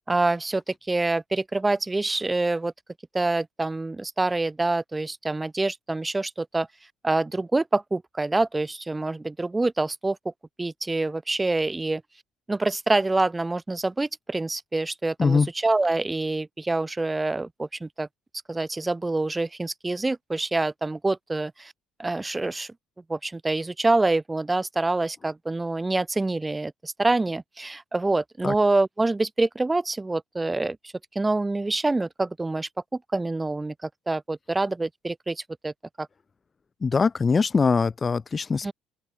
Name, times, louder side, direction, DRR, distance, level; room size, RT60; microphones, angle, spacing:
voice 1, 0.1-2.7 3.1-6.7 7.0-10.2 10.6-12.0 12.5-18.1 18.5-21.7 22.0-22.7 23.1-36.1 38.6-38.7, right 2 dB, 15° right, 7.0 m, -26 dB
voice 2, 36.8-38.7, left 5 dB, 30° left, 2.1 m, -22 dB
open air
hypercardioid pair, 60°, 0 cm